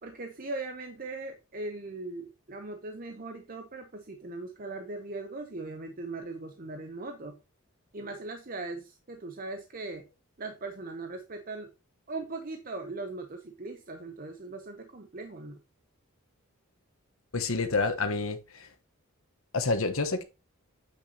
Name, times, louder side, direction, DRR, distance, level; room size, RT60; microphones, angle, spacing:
voice 1, 0.0-7.4 7.9-10.0 10.4-11.7 12.1-15.6, right 2 dB, 40° right, 0.8 m, -39 dB
voice 2, 17.3-18.4 19.5-20.2, left 3 dB, 70° left, 1.2 m, -28 dB
8.2 x 6.2 x 2.8 m
head